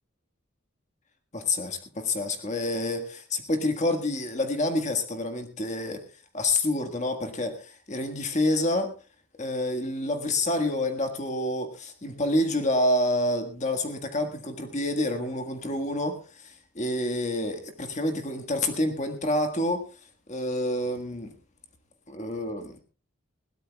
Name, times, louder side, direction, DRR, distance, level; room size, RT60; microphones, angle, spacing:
voice 1, 1.3-9.0 9.4-20.0 20.3-21.3 22.1-22.7, left 1 dB, 35° left, 6 dB, 1.6 m, -28 dB
21.0 x 17.0 x 2.3 m, 0.34 s
head